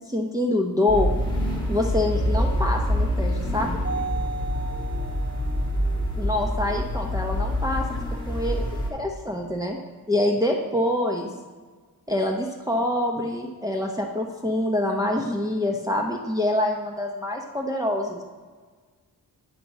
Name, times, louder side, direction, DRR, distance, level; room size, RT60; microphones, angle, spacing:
voice 1, 0.1-1.1 1.7-3.7 6.2-7.8 8.3-9.8 10.1-11.3 12.1-18.2, left 1 dB, 10° right, -1 dB, 0.7 m, -25 dB
sound 1, 0.9-8.9, left 1 dB, 10° left, 1.6 m, -26 dB
voice 2, 1.6-1.9 3.9-4.3 7.7-8.0, left 2 dB, 30° left, 3 dB, 1.1 m, -43 dB
sound 2, 2.1-6.8, right 4 dB, 40° right, 1.9 m, -36 dB
9.3 x 4.8 x 4.1 m, 1.5 s
cardioid pair, 80°, 37 cm